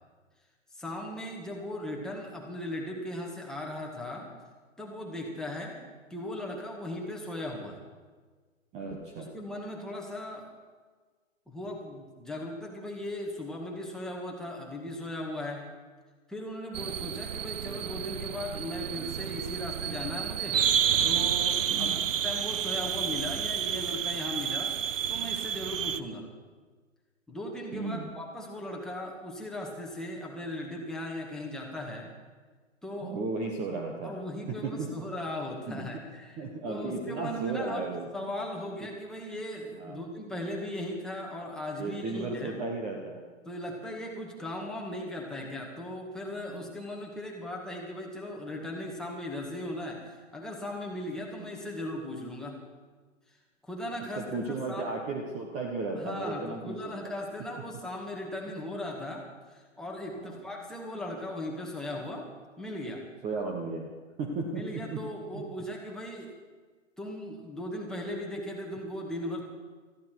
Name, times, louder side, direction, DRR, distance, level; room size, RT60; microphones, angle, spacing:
voice 1, 0.7-4.3 4.8-5.8 6.1-7.8 9.3-10.5 11.5-15.6 16.3-20.6 21.0-24.8 25.1-26.3 27.3-32.1 32.8-33.1 34.0-36.4 36.7-37.8 38.1-42.6 43.4-52.6 53.6-54.2 54.5-54.9 56.0-62.3 62.6-63.0 64.5-66.3 67.0-69.4, left 1 dB, ahead, -2 dB, 2.0 m, -38 dB
voice 2, 8.7-9.3 21.7-22.0 27.7-28.1 33.0-34.1 34.6-34.9 35.7-36.0 36.4-38.1 39.7-40.0 41.8-43.2 46.3-46.7 51.2-51.5 54.1-56.9 60.1-60.4 63.2-63.9 64.2-65.0 65.3-65.4, right 3 dB, 15° right, 1 dB, 1.3 m, -35 dB
sound 1, 16.7-26.0, right 8 dB, 70° right, 0.8 m, -30 dB
19.0 x 14.5 x 4.7 m, 1.4 s
hypercardioid pair, 140°, 40 cm